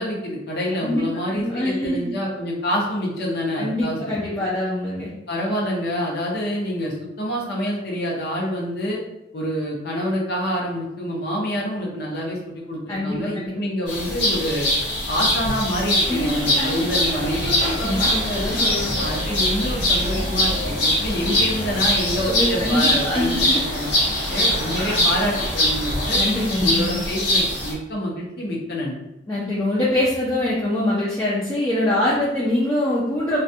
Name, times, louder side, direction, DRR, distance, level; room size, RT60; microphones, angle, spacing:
voice 1, 0.0-4.5 5.3-9.0 9.3-14.7 15.1-18.0 19.0-23.9 24.3-26.2 26.6-29.0, equal, 60° left, -3 dB, 0.7 m, -27 dB
voice 2, 1.3-2.2 3.6-5.1 12.9-13.5 16.1-16.9 17.8-18.9 22.3-23.8 26.1-26.9 29.3-33.4, left 1 dB, 15° left, -7 dB, 0.4 m, -24 dB
sound 1, 13.9-27.7, left 1 dB, 80° left, 1.1 m, -23 dB
sound 2, 15.7-26.4, equal, 50° right, 0.6 m, -32 dB
2.3 x 2.2 x 2.6 m, 0.90 s
head